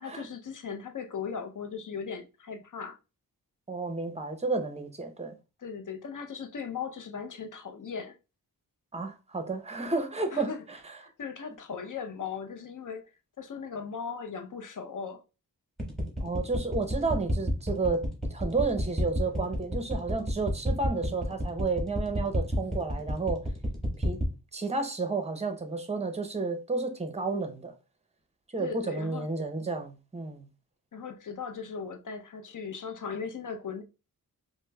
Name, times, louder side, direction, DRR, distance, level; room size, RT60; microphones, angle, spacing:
voice 1, 0.0-3.0 5.6-8.1 10.3-10.6 11.2-13.1 13.4-15.2 28.6-29.3 30.9-33.8, left 6 dB, 55° left, 0.6 m, -38 dB
voice 2, 3.7-5.4 8.9-10.8 16.2-23.4 24.0-24.2 24.5-27.7 28.5-30.5, right 3 dB, 15° right, 0.7 m, -31 dB
sound 1, 15.8-24.3, equal, ahead, 1.4 m, -30 dB
4.9 x 2.1 x 2.2 m
cardioid pair, 55°, 38 cm